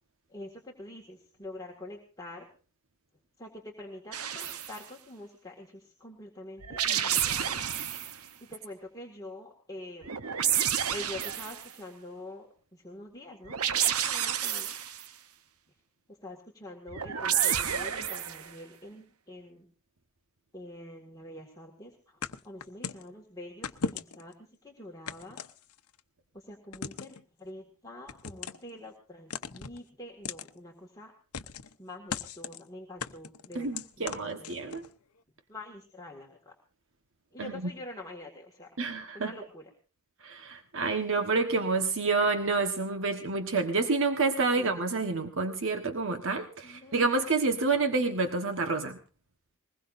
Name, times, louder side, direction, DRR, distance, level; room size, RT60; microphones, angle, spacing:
voice 1, 0.3-2.5 3.4-7.6 8.5-10.1 10.9-14.7 16.2-19.7 20.5-24.3 24.6-25.4 26.3-31.1 31.8-34.7 35.5-36.5 37.3-38.7 39.1-39.7 44.6-44.7 46.6-46.9, left 1 dB, 15° left, -1 dB, 2.0 m, -46 dB
sound 1, 4.1-4.8 6.6-8.2 10.0-11.7 13.4-15.1 16.9-18.5, right 9 dB, 80° right, 1.0 m, -30 dB
sound 2, 22.2-23.1 23.6-24.3 25.1-26.0 26.7-27.2 28.1-28.7 29.3-29.8 30.2-30.5 31.3-31.7 32.1-32.6 33.0-34.9, left 5 dB, 85° left, 0.8 m, -38 dB
voice 2, 33.5-34.8 37.4-37.7 38.8-39.3 40.2-49.0, right 3 dB, 60° right, 6 dB, 1.4 m, -28 dB
21.5 x 20.0 x 2.6 m, 0.37 s
head